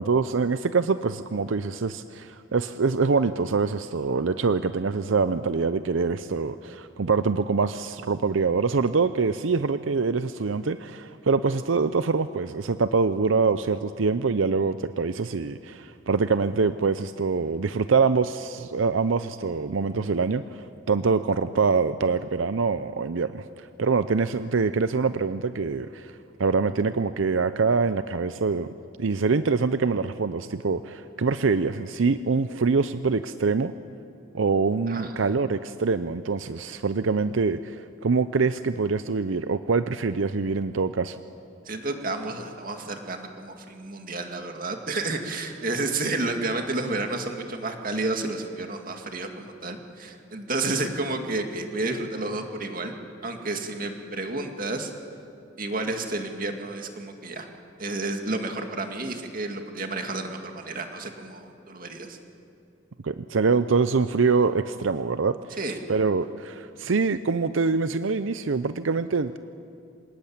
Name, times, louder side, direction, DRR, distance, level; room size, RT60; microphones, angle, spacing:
voice 1, 0.0-28.7 29.0-33.7 34.3-41.2 63.0-65.3 65.9-69.4, right 4 dB, 85° right, 12 dB, 0.6 m, -24 dB
voice 2, 41.7-53.0 53.2-54.9 55.6-57.5 57.8-62.2 65.6-65.8, right 2 dB, 45° right, 4 dB, 2.3 m, -31 dB
26.5 x 19.0 x 8.8 m, 2.5 s
head